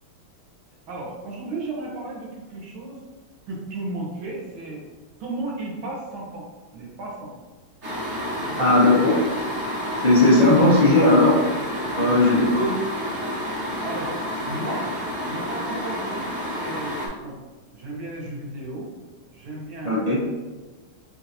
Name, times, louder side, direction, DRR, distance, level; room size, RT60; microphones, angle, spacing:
voice 1, 0.9-3.0 3.5-4.9 5.2-7.3 8.4-9.2 11.9-12.2 13.8-14.9 15.2-17.4 17.7-18.9 19.3-20.0, right 2 dB, 85° right, -4 dB, 1.9 m, -34 dB
sound 1, 7.8-17.1, equal, 45° right, 1.0 m, -30 dB
voice 2, 8.6-9.2 10.0-11.4 12.0-12.8 19.8-20.2, left 2 dB, 50° left, -9 dB, 0.4 m, -17 dB
5.5 x 2.7 x 2.7 m, 1.2 s
omnidirectional pair, 2.2 m